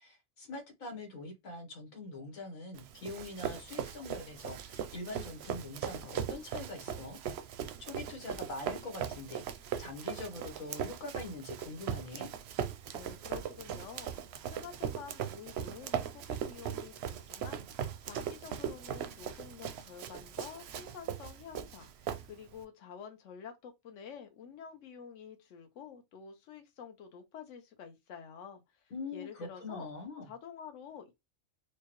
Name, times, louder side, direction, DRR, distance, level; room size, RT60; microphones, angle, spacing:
voice 1, 0.0-7.2 7.8-12.3 28.9-30.3, left 2 dB, 85° left, 1.6 m, -43 dB
Run, 2.7-22.6, right 9 dB, 65° right, 0.7 m, -39 dB
voice 2, 12.9-14.1 14.5-17.7 18.0-28.8 29.1-29.9 30.3-31.1, left 7 dB, 70° left, 1.1 m, -49 dB
4.9 x 2.2 x 3.0 m
omnidirectional pair, 1.4 m